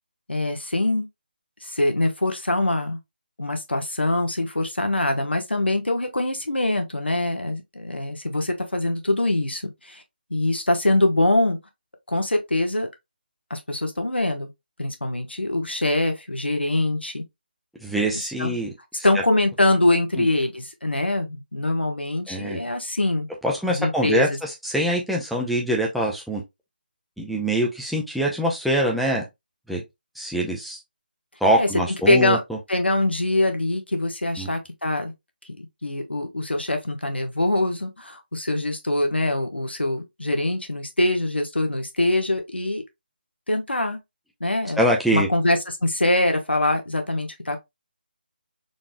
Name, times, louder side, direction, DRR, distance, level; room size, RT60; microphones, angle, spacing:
voice 1, 0.3-1.1 1.6-3.0 3.4-10.0 10.3-11.6 12.1-12.9 13.5-14.5 14.8-17.2 18.4-18.6 19.0-23.3 23.7-24.4 31.5-31.7 32.1-32.4 32.7-35.1 35.6-42.8 43.5-44.0 44.4-44.8 45.1-47.6, left 1 dB, 85° left, 1.2 m, -23 dB
voice 2, 17.8-18.7 20.2-20.3 22.3-22.6 23.4-26.4 27.2-29.3 29.7-29.8 30.2-30.8 31.4-32.4 34.4-34.5 44.8-45.3, right 1 dB, ahead, 0.6 m, -24 dB
4.0 x 3.4 x 2.2 m
figure-of-eight pair, 155°, 6 cm